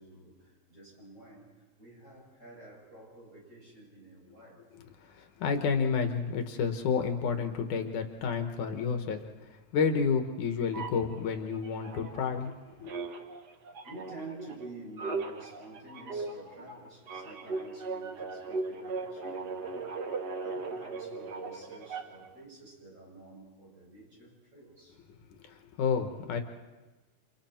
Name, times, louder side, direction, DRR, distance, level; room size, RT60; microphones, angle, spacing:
voice 1, 0.0-4.7 13.8-19.9 20.4-25.0, right 2 dB, 20° right, -3 dB, 8.0 m, -50 dB
voice 2, 5.0-9.2 9.7-12.5 12.8-12.9 25.5-26.4, left 6 dB, 80° left, 5 dB, 2.7 m, -30 dB
sound 1, 10.7-12.5 12.8-22.3, right 3 dB, 50° right, 1.3 m, -38 dB
30.0 x 28.5 x 4.4 m, 1.2 s
omnidirectional pair, 3.5 m